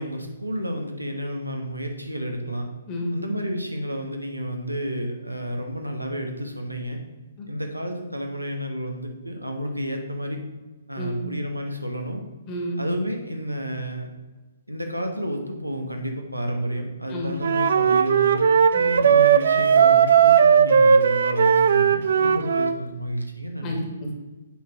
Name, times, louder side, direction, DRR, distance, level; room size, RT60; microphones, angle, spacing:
voice 1, 0.0-2.7 3.1-7.0 7.5-10.4 10.9-12.2 12.8-14.1 14.7-18.5 19.0-23.7, equal, 85° right, 3 dB, 1.3 m, -31 dB
voice 2, 2.9-3.3 7.4-7.5 11.0-11.4 12.5-12.9 17.1-17.6 18.7-19.1 22.2-22.5 23.6-24.2, equal, 25° left, 0 dB, 1.9 m, -31 dB
Wind instrument woodwind instrument, 17.4-22.8, right 7 dB, 55° right, 0.4 m, -17 dB
7.8 x 4.4 x 5.9 m, 1.2 s
figure-of-eight pair, 125°, 0 cm